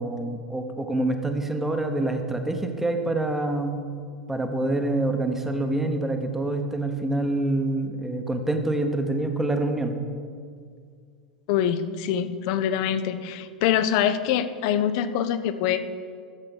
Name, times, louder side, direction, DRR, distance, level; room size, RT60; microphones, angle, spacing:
voice 1, 0.0-3.8 4.3-9.9, right 2 dB, 5° right, 5 dB, 0.9 m, -26 dB
voice 2, 11.5-15.8, left 9 dB, 50° left, 12 dB, 0.6 m, -24 dB
13.0 x 7.6 x 4.1 m, 2.2 s
figure-of-eight pair, 85°, 4 cm